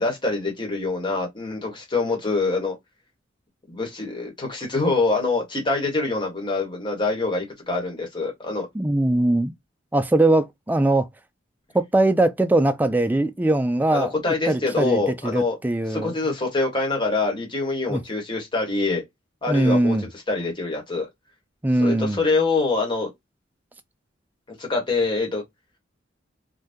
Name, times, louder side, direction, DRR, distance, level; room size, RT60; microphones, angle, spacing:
voice 1, 0.0-2.7 3.7-8.7 13.9-15.5 15.9-19.0 19.4-19.9 20.3-21.1 21.8-23.1 24.6-25.4, left 3 dB, 25° left, 1.2 m, -25 dB
voice 2, 8.7-9.5 9.9-11.1 11.7-14.1 14.5-16.2 17.9-18.0 19.5-20.0 21.6-22.2, right 1 dB, 10° right, 0.3 m, -21 dB
2.6 x 2.2 x 3.4 m
head